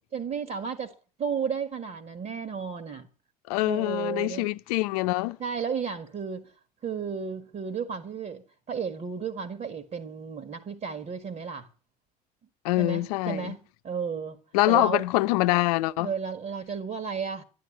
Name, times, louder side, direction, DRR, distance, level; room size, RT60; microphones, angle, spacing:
voice 1, 0.1-3.1 3.7-4.5 5.4-6.5 6.8-11.7 12.8-13.6 13.8-14.4 14.7-15.0 16.0-17.4, right 6 dB, 40° right, 1.9 m, -33 dB
voice 2, 3.5-5.4 12.6-13.5 14.5-16.1, left 19 dB, 65° left, 0.8 m, -25 dB
12.0 x 12.0 x 8.7 m
figure-of-eight pair, 60°, 21 cm